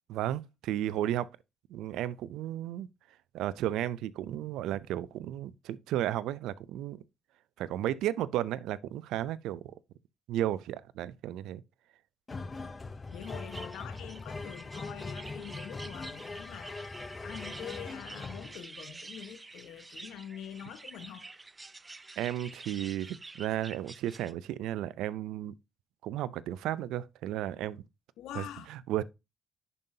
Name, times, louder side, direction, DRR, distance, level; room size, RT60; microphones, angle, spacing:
voice 1, 0.1-1.3 1.7-2.9 3.3-7.0 7.6-9.7 10.3-11.6 22.2-25.5 26.0-27.8 28.3-28.4 28.9-29.0, right 12 dB, 85° right, 0.5 m, -33 dB
sound 1, 12.3-18.6, left 3 dB, 30° left, 0.7 m, -41 dB
voice 2, 13.1-16.9 17.2-21.3 28.2-28.7, left 10 dB, 85° left, 1.2 m, -45 dB
sound 2, 13.1-24.3, right 3 dB, 25° right, 0.7 m, -48 dB
11.0 x 5.4 x 2.8 m
cardioid pair, 80°, 0 cm